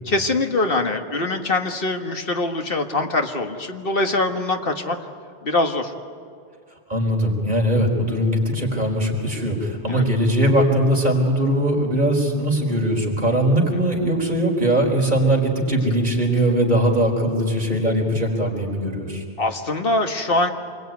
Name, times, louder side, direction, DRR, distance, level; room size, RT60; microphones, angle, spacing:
voice 1, 0.1-5.0 5.4-5.9 9.8-10.0 19.4-20.5, left 2 dB, 50° left, 5 dB, 1.8 m, -23 dB
voice 2, 6.9-19.2, right 1 dB, 40° right, 0 dB, 4.5 m, -20 dB
27.0 x 21.5 x 9.4 m, 2.3 s
omnidirectional pair, 1.2 m